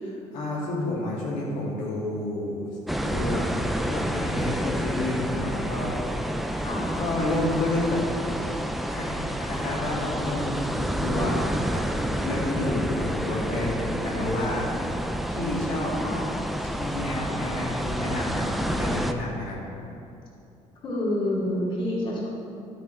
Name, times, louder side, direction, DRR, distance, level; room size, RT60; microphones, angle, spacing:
voice 1, 0.0-2.6 2.9-3.5 3.8-6.2 6.9-8.0 8.8-9.1 9.4-11.8 12.2-14.7 15.3-15.9 16.8-19.6, left 2 dB, 85° left, -5 dB, 2.6 m, -30 dB
sound 1, 2.9-19.1, equal, ahead, 0.4 m, -29 dB
voice 2, 6.6-7.0 16.0-16.3 20.8-22.3, left 1 dB, 40° left, -6 dB, 2.3 m, -28 dB
12.0 x 9.2 x 3.6 m, 2.7 s
cardioid pair, 165°, 12 cm